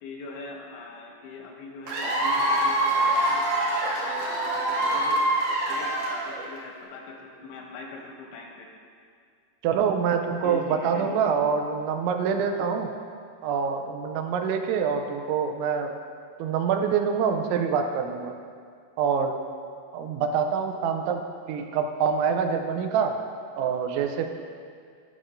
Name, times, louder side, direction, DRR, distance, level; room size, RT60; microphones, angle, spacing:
voice 1, 0.0-5.2 5.7-8.7 10.4-11.1, left 3 dB, 85° left, 0 dB, 3.1 m, -41 dB
Cheering / Applause / Crowd, 1.9-6.6, right 1 dB, 65° right, 2.0 m, -25 dB
voice 2, 9.6-12.9 13.4-15.9 16.4-18.3 19.0-19.4 19.9-21.2 21.5-23.2 23.6-24.3, right 6 dB, 85° right, 5 dB, 3.0 m, -25 dB
13.0 x 6.1 x 2.6 m, 2.2 s
omnidirectional pair, 5.2 m